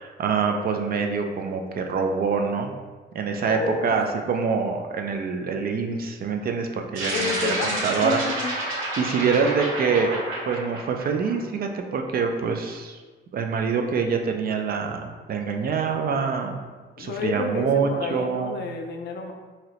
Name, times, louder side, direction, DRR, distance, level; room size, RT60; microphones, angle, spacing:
voice 1, 0.0-2.7 3.1-8.2 9.0-10.1 10.5-13.0 13.3-16.6 17.0-18.6, right 5 dB, 50° right, 4 dB, 0.4 m, -25 dB
voice 2, 3.4-3.9 7.1-8.5 17.0-19.3, left 4 dB, 60° left, 4 dB, 0.4 m, -30 dB
sound 1, 6.9-11.6, right 1 dB, 85° right, 0.7 m, -30 dB
2.9 x 2.8 x 2.9 m, 1.3 s
cardioid pair, 90°, 20 cm